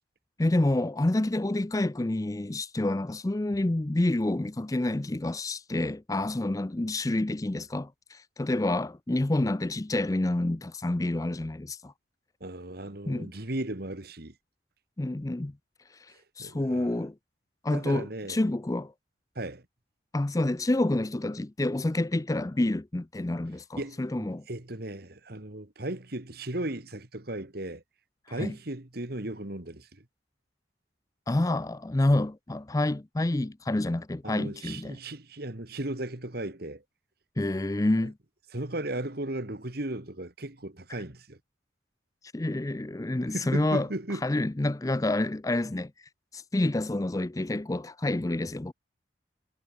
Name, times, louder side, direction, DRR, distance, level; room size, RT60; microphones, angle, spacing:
voice 1, 0.4-11.9 13.1-13.3 15.0-15.5 16.0-17.1 17.6-18.9 20.1-24.4 28.3-28.5 31.3-35.0 37.4-38.1 42.3-43.9 44.2-45.9 46.3-48.7, left 1 dB, 20° left, 0.4 m, -28 dB
voice 2, 12.4-14.3 16.4-17.0 17.7-18.4 19.4-19.6 23.8-27.8 28.3-30.0 34.2-36.8 38.5-41.4 43.3-44.2, right 1 dB, 55° right, 2.0 m, -36 dB
head